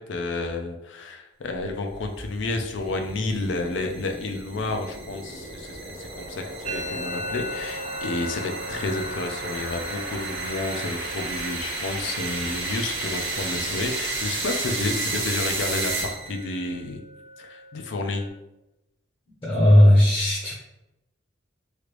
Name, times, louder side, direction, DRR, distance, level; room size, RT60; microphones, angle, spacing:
voice 1, 0.0-17.0 17.4-18.3, left 2 dB, 80° left, 4 dB, 0.5 m, -30 dB
sound 1, 1.7-16.5, right 3 dB, 75° right, 1.0 m, -32 dB
Musical instrument, 6.7-14.3 14.6-15.1 15.4-16.0 16.3-18.3, equal, 40° right, 0.4 m, -39 dB
voice 2, 19.4-20.5, left 1 dB, 30° left, -7 dB, 0.7 m, -16 dB
3.2 x 2.5 x 3.0 m, 0.93 s
head